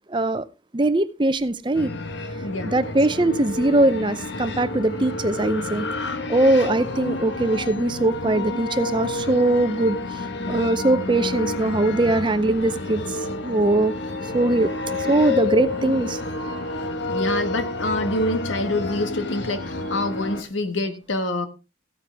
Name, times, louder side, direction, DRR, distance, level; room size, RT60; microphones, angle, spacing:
voice 1, 0.1-0.4 0.7-1.9 2.6-5.9 6.3-10.0 10.5-13.2 13.4-13.9 14.3-14.7 15.1-16.2, right 2 dB, 25° right, 0.6 m, -21 dB
sound 1, 1.7-20.4, left 3 dB, 65° left, 1.3 m, -29 dB
voice 2, 2.4-2.9 17.1-21.5, left 2 dB, 85° left, 1.5 m, -26 dB
15.0 x 9.6 x 3.5 m
head